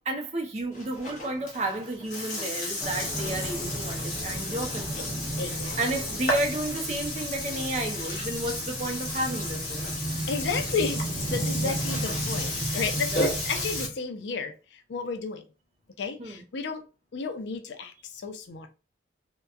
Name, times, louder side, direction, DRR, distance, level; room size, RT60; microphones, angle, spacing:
voice 1, 0.1-9.9 11.6-11.8 13.1-13.3 16.2-16.4, right 1 dB, 35° right, 0.5 m, -32 dB
Burping eructation, 0.7-13.9, left 1 dB, 45° left, 0.8 m, -33 dB
sound 1, 2.8-13.9, right 1 dB, ahead, 0.7 m, -35 dB
voice 2, 5.4-5.8 10.3-11.0 11.3-15.4 16.0-16.8 17.1-18.7, left 5 dB, 75° left, 0.5 m, -32 dB
2.9 x 2.1 x 2.3 m
head